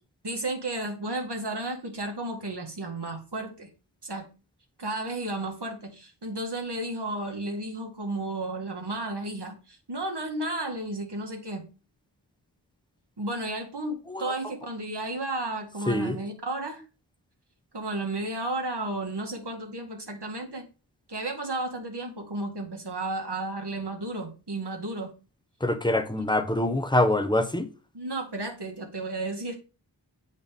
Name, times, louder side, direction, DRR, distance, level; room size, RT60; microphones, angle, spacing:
voice 1, 0.2-3.7 4.0-4.3 4.8-11.7 13.2-16.8 17.7-20.7 21.1-25.1 27.9-29.6, right 2 dB, 65° right, 1.8 m, -33 dB
voice 2, 15.9-16.2 25.6-27.7, left 1 dB, 10° left, 0.8 m, -25 dB
8.7 x 4.1 x 3.6 m
wide cardioid pair, 50°, 44 cm